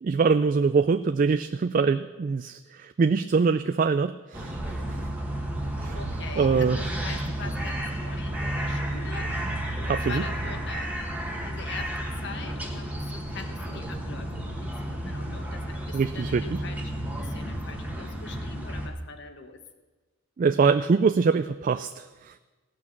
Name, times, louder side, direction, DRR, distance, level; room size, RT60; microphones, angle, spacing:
voice 1, 0.0-4.6 5.8-6.0 6.4-6.8 9.9-10.2 15.9-16.4 20.4-22.3, right 5 dB, 40° right, 10 dB, 0.3 m, -23 dB
sound 1, 4.3-18.9, right 1 dB, 5° right, 1.3 m, -32 dB
voice 2, 4.6-5.1 5.9-9.4 9.8-11.2 11.4-19.6, left 4 dB, 60° left, 6 dB, 1.2 m, -43 dB
17.0 x 6.1 x 7.4 m, 1.2 s
head